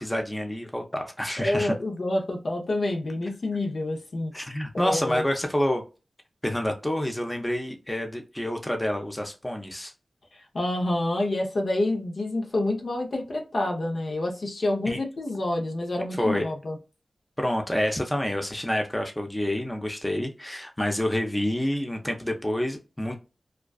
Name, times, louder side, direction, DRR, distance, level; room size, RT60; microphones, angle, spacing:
voice 1, 0.0-1.8 4.3-5.8 6.4-9.9 14.9-15.0 16.1-16.4 17.4-23.2, left 1 dB, 15° left, 4 dB, 0.5 m, -28 dB
voice 2, 1.4-4.3 4.7-5.2 10.5-16.8, left 1 dB, 70° left, 0 dB, 0.6 m, -28 dB
2.3 x 2.3 x 2.2 m, 0.31 s
cardioid pair, 40°, 0 cm